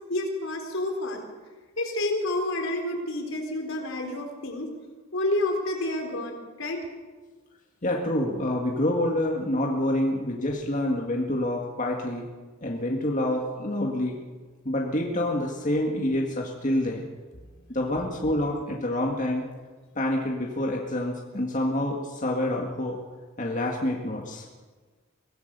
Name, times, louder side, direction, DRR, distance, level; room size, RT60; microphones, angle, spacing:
voice 1, 0.1-1.2 1.8-4.7 5.1-6.8, left 1 dB, 70° left, 2 dB, 4.2 m, -29 dB
voice 2, 7.8-12.2 12.6-14.2 14.7-17.0 17.7-19.4 20.0-23.0 23.4-24.5, left 1 dB, 35° left, -1 dB, 2.0 m, -27 dB
24.0 x 17.0 x 6.9 m, 1.4 s
head